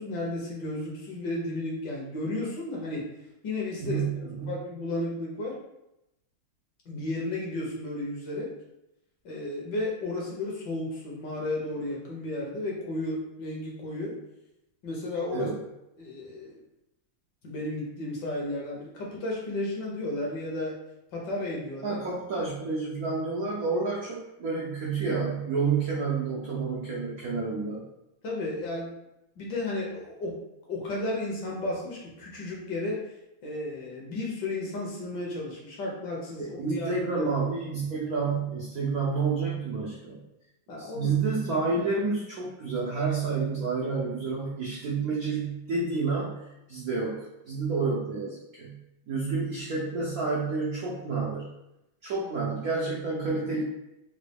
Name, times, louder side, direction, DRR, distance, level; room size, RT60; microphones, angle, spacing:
voice 1, 0.0-3.1 3.4-4.0 4.5-5.6 6.9-8.5 9.2-14.1 14.8-15.5 16.0-16.6 17.4-20.7 21.1-22.0 28.2-28.9 29.4-30.3 30.7-33.0 33.4-37.3 40.7-41.2, left 2 dB, 65° left, -3 dB, 1.2 m, -33 dB
voice 2, 3.8-4.6 15.3-15.6 21.8-27.8 36.4-40.2 40.8-48.8 49.1-51.5 52.0-53.7, right 4 dB, 85° right, -5 dB, 0.8 m, -29 dB
3.9 x 2.2 x 3.3 m, 0.88 s
omnidirectional pair, 2.3 m